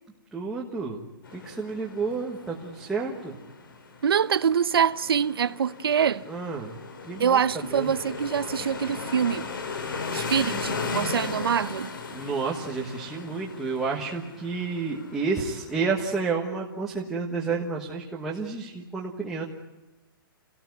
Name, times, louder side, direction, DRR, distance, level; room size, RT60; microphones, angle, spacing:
voice 1, 0.3-1.0 1.3-3.4 6.3-6.7 7.1-7.4 7.7-7.9 12.1-19.4, right 4 dB, 5° right, 1.3 m, -30 dB
sound 1, 1.2-16.3, left 4 dB, 65° left, 4.4 m, -37 dB
voice 2, 4.0-6.2 7.2-9.5 10.1-11.9, right 7 dB, 80° right, 1.0 m, -24 dB
28.5 x 19.0 x 9.4 m
hypercardioid pair, 180°, 12 cm